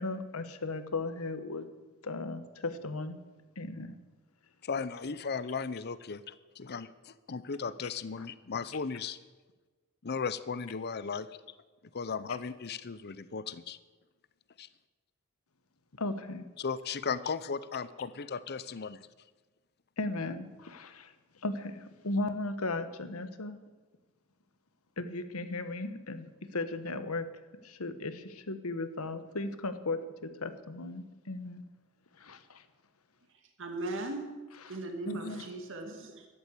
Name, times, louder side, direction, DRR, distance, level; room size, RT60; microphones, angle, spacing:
voice 1, 0.0-1.7 2.0-3.2 3.6-3.9 8.2-8.3 16.0-16.5 20.0-21.1 21.4-23.6 25.0-27.3 27.6-31.6 32.2-32.6 35.0-35.5, left 2 dB, 85° left, 10 dB, 1.2 m, -36 dB
voice 2, 4.6-9.2 10.0-11.4 11.9-13.8 14.6-14.7 16.6-19.1, left 5 dB, 50° left, 15 dB, 0.7 m, -36 dB
voice 3, 33.6-34.3 34.7-36.3, right 2 dB, 60° right, 4 dB, 2.2 m, -38 dB
13.0 x 11.5 x 8.4 m, 1.3 s
head